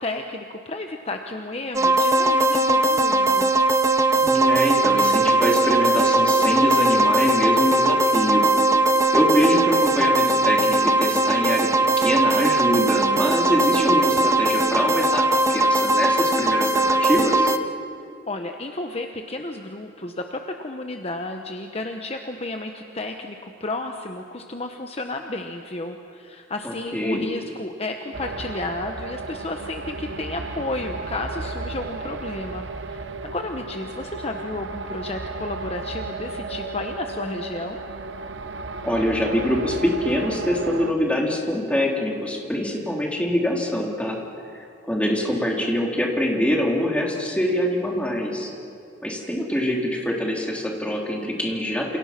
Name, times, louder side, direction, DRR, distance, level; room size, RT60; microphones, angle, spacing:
voice 1, 0.0-3.5 18.3-37.8, left 2 dB, 35° left, 4 dB, 1.1 m, -32 dB
sound 1, 1.7-17.6, right 2 dB, 15° right, 0.9 m, -19 dB
voice 2, 4.1-8.5 9.1-11.7 12.0-17.5 26.6-27.3 38.8-44.2 44.5-48.5 49.0-52.0, left 1 dB, 5° left, -1 dB, 3.5 m, -24 dB
Horror Ambiance, 28.1-40.9, right 3 dB, 85° right, 0.9 m, -34 dB
28.5 x 28.5 x 6.0 m, 2.4 s
head